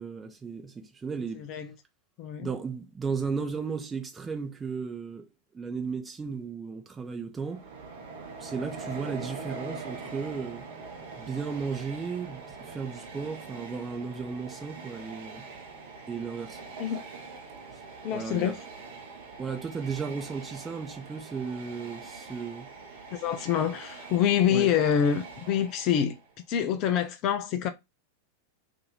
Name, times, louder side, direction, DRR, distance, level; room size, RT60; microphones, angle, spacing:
voice 1, 0.0-1.5 2.4-5.2 5.5-7.6 8.4-10.7 11.2-15.4 16.1-16.6 18.1-18.6 19.4-22.7 24.5-24.7, right 5 dB, 15° right, 0.7 m, -35 dB
voice 2, 1.4-1.7 2.2-2.5 16.8-17.0 18.0-18.6 23.1-26.2 26.5-27.7, left 9 dB, 40° left, 0.4 m, -26 dB
Train, 7.4-26.3, right 4 dB, 55° right, 0.9 m, -43 dB
2.7 x 2.6 x 3.9 m
figure-of-eight pair, 90°, 0 cm